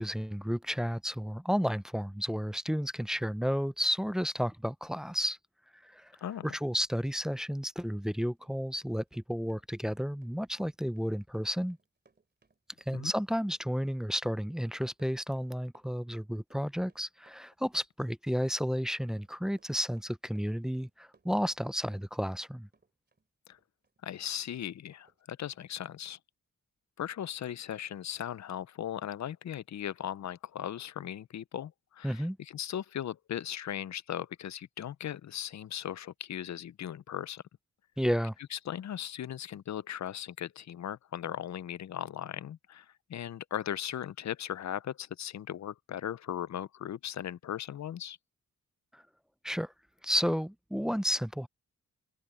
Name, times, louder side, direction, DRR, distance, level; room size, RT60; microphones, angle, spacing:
voice 1, 0.0-5.4 5.8-6.1 6.4-11.8 12.9-22.7 32.0-32.4 38.0-38.3 48.9-49.0 49.4-49.7 50.0-51.5, equal, ahead, 0.4 m, -32 dB
voice 2, 6.2-6.6 12.9-13.1 23.5-23.6 24.0-26.2 27.0-37.4 38.5-48.2, left 10 dB, 60° left, 0.6 m, -38 dB
Run, 7.8-22.5 22.7-24.3 24.6-24.8 25.0-25.2 25.5-25.6, right 4 dB, 35° right, 3.0 m, -69 dB
open air
cardioid pair, 90°, 31 cm